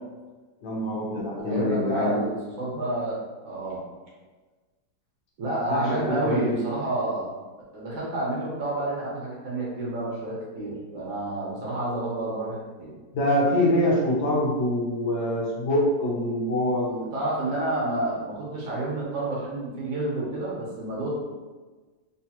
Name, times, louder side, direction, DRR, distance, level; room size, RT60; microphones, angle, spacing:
voice 1, 0.6-2.2 5.7-6.6 13.1-17.1, left 1 dB, 70° left, -4 dB, 1.6 m, -25 dB
voice 2, 1.4-3.8 5.4-7.3 7.7-12.9 17.1-21.2, right 2 dB, 80° right, -6 dB, 2.0 m, -29 dB
4.6 x 2.3 x 2.9 m, 1.3 s
omnidirectional pair, 2.2 m